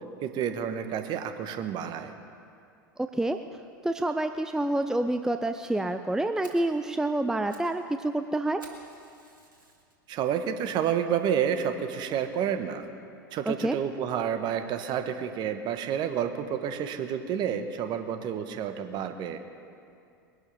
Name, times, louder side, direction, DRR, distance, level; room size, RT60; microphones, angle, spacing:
voice 1, 0.2-2.1 10.1-12.8 13.3-19.4, right 8 dB, 40° right, 8 dB, 1.3 m, -29 dB
voice 2, 3.0-3.4 3.8-8.6 13.5-13.8, right 1 dB, 5° right, 8 dB, 0.5 m, -28 dB
Fire, 5.6-5.7 6.1-6.2 6.4-6.7 7.2-7.7 8.0-8.1 8.6-9.9 10.5-10.6 11.2-11.3 11.5-11.6 12.0-12.1, right 2 dB, 90° right, 2.3 m, -53 dB
21.5 x 11.5 x 5.2 m, 2.4 s
figure-of-eight pair, 85°, 11 cm